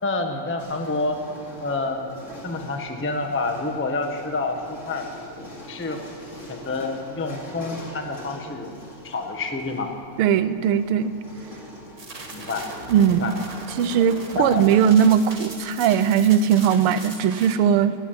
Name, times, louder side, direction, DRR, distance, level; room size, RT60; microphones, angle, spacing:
voice 1, 0.0-1.2 1.6-2.1 2.4-5.0 5.7-6.0 6.5-8.7 9.0-9.9 12.3-12.6 13.2-13.3 14.3-14.7, left 3 dB, 10° left, 4 dB, 0.5 m, -28 dB
sound 1, 0.6-15.5, left 1 dB, 35° left, 2.6 m, -43 dB
voice 2, 10.2-11.1 12.9-13.3 13.8-18.0, right 8 dB, 85° right, 13 dB, 1.6 m, -19 dB
sound 2, 12.0-17.5, right 3 dB, 35° right, 2.0 m, -39 dB
17.0 x 8.3 x 8.9 m, 2.5 s
omnidirectional pair, 2.4 m